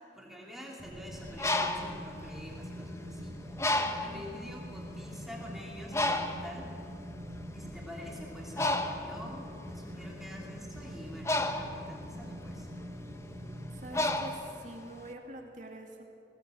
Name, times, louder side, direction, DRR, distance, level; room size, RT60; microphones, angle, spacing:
voice 1, 0.0-3.5 4.0-6.7 7.5-12.7, equal, ahead, -3 dB, 3.1 m, -46 dB
sound 1, 0.8-14.3, equal, 25° right, 3.5 m, -44 dB
Bird, 1.2-3.0 3.6-4.3 4.9-5.1 5.3-15.1, left 2 dB, 15° left, 0.9 m, -33 dB
voice 2, 3.8-4.2 13.8-16.0, right 1 dB, 40° right, 1 dB, 2.6 m, -46 dB
20.5 x 18.5 x 7.9 m, 2.7 s
head